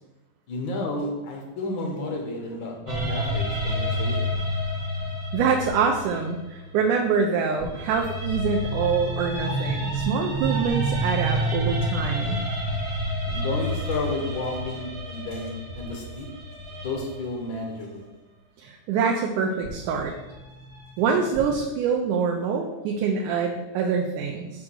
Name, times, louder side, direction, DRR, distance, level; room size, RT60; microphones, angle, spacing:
voice 1, 0.5-4.3 13.3-16.3 16.8-18.1, left 2 dB, 75° left, 1 dB, 1.1 m, -32 dB
sound 1, 2.9-7.1 7.6-17.6 19.6-21.5, equal, 50° right, 1.7 m, -29 dB
voice 2, 5.3-12.4 18.6-20.1 21.0-24.5, right 5 dB, 85° right, 2 dB, 2.1 m, -25 dB
6.3 x 3.7 x 6.2 m, 1.0 s
omnidirectional pair, 3.5 m